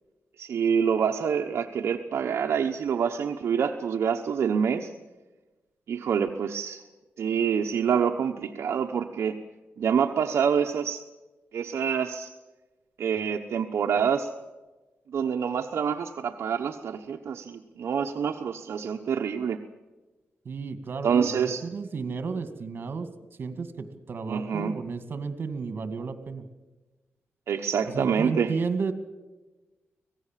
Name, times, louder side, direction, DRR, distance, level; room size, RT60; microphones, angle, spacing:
voice 1, 0.4-4.9 5.9-6.8 7.2-9.4 9.8-11.0 11.5-12.3 13.0-14.3 15.1-19.6 21.0-21.7 24.3-24.7 27.5-28.5, right 7 dB, 70° right, 3 dB, 1.1 m, -26 dB
voice 2, 20.5-23.1 23.4-26.4 27.9-28.9, right 4 dB, 50° right, 10 dB, 2.2 m, -33 dB
25.5 x 18.0 x 7.5 m, 1.2 s
wide cardioid pair, 125°, 5 cm